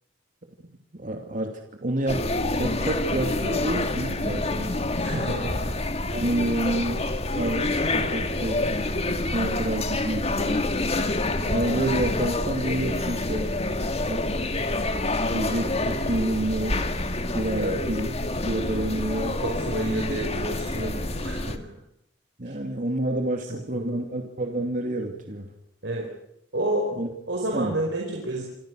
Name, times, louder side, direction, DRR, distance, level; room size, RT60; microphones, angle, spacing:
voice 1, 0.9-2.3 2.6-4.7 5.0-5.3 6.1-7.1 7.3-8.8 9.3-10.6 11.5-13.5 14.0-14.3 15.3-16.8 17.3-18.1 18.4-19.4 22.4-25.5 27.0-27.1 27.5-27.7, right 1 dB, 50° right, 3 dB, 2.7 m, -28 dB
sound 1, 2.1-21.6, left 2 dB, 35° left, 1.9 m, -27 dB
voice 2, 4.9-5.7 8.6-8.7 10.2-10.3 17.5-17.8 19.4-21.6 23.5-24.1 25.8-26.1 26.5-26.9 27.3-28.4, right 1 dB, 70° right, -1 dB, 5.2 m, -30 dB
27.5 x 24.5 x 6.5 m, 0.77 s
head